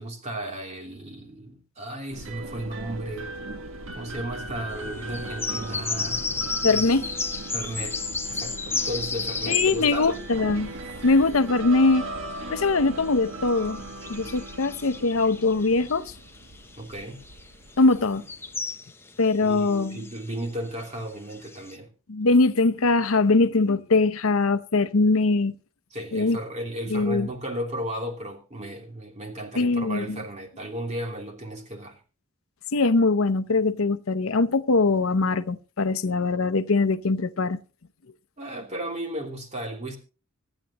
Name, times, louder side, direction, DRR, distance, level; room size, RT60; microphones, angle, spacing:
voice 1, 0.0-3.3 3.9-6.3 6.7-7.0 7.5-8.0 8.3-10.1 16.8-17.2 19.4-21.9 25.9-32.0 38.4-40.0, right 1 dB, 35° right, 3.1 m, -34 dB
sound 1, 2.1-18.6, right 2 dB, 65° right, 1.6 m, -38 dB
sound 2, 5.0-11.5 11.9-21.7, left 4 dB, 10° left, 0.8 m, -33 dB
voice 2, 6.6-7.1 9.5-10.7 11.0-12.1 12.5-13.8 14.1-16.1 17.8-18.2 19.2-20.0 22.1-25.5 26.1-26.4 26.9-27.3 29.5-30.2 32.7-37.6, left 3 dB, 70° left, 0.8 m, -22 dB
25.5 x 9.0 x 3.0 m
head